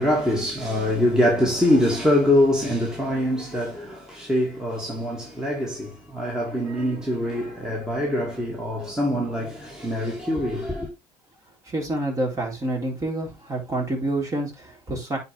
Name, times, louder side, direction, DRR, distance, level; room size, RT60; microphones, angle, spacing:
voice 1, 0.0-10.9, left 1 dB, 5° right, 2.3 m, -24 dB
voice 2, 11.7-15.2, right 1 dB, 25° right, 4.2 m, -28 dB
9.4 x 4.5 x 3.4 m
supercardioid pair, 80°, 13 cm